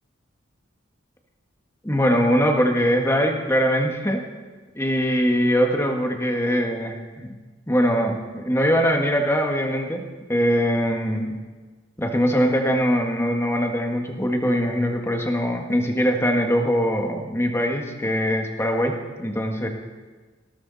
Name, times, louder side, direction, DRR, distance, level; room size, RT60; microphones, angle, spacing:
voice 1, 1.8-4.2 4.8-7.3 7.7-10.0 10.3-11.4 12.0-19.7, equal, 15° left, 2 dB, 1.8 m, -22 dB
19.5 x 17.5 x 4.2 m, 1.3 s
head